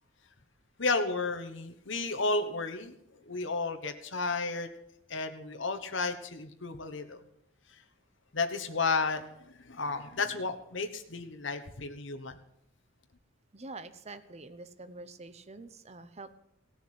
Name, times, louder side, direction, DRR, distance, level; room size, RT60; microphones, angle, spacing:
voice 1, 0.8-2.9 3.2-4.7 5.1-7.2 8.3-12.4, left 3 dB, 65° left, 6 dB, 1.3 m, -32 dB
voice 2, 13.5-16.3, right 3 dB, 30° right, 11 dB, 0.8 m, -46 dB
16.5 x 7.0 x 8.7 m, 0.77 s
head